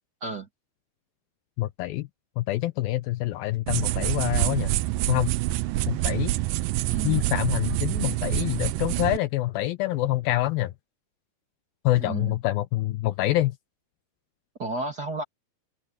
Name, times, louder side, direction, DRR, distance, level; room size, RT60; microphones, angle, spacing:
voice 1, 1.6-2.1 2.4-4.7 5.1-5.3 5.9-6.3 7.0-10.7 11.8-13.5, left 16 dB, 75° left, 2.3 m, -26 dB
sound 1, 3.7-9.2, right 17 dB, 85° right, 2.0 m, -26 dB
voice 2, 6.8-7.3 12.0-12.4 14.6-15.2, right 3 dB, 30° right, 2.2 m, -32 dB
open air
omnidirectional pair, 4.6 m